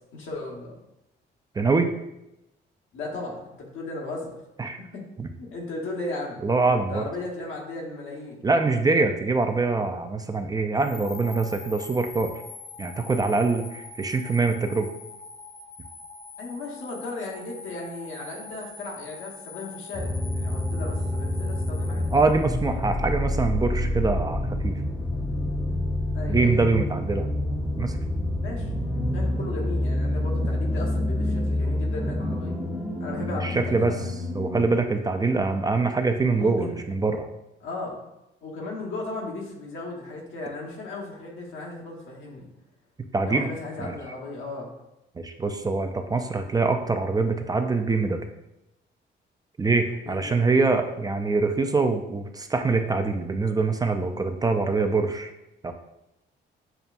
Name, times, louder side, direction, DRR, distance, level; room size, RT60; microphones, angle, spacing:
voice 1, 0.1-0.7 2.9-4.4 4.9-5.0 5.4-6.4 6.9-8.4 9.4-9.6 16.4-22.1 26.1-26.6 28.4-32.6 33.0-34.0 36.3-36.8 37.6-38.0 38.4-42.5 43.2-44.7 50.0-50.8, left 2 dB, 85° left, -2 dB, 1.2 m, -36 dB
voice 2, 1.6-1.9 4.6-4.8 5.2-5.3 6.4-7.1 8.4-12.3 12.8-14.9 22.1-24.8 26.3-27.3 27.8-28.0 33.3-34.0 34.3-37.3 43.1-43.5 43.8-44.0 45.2-48.2 49.6-55.3 55.6-55.7, right 3 dB, 20° right, 6 dB, 0.3 m, -24 dB
sound 1, 10.7-22.9, left 4 dB, 50° left, 0.8 m, -43 dB
sound 2, 19.9-34.6, left 1 dB, 5° left, 0.7 m, -27 dB
6.8 x 2.3 x 2.5 m, 0.90 s
cardioid pair, 90°, 20 cm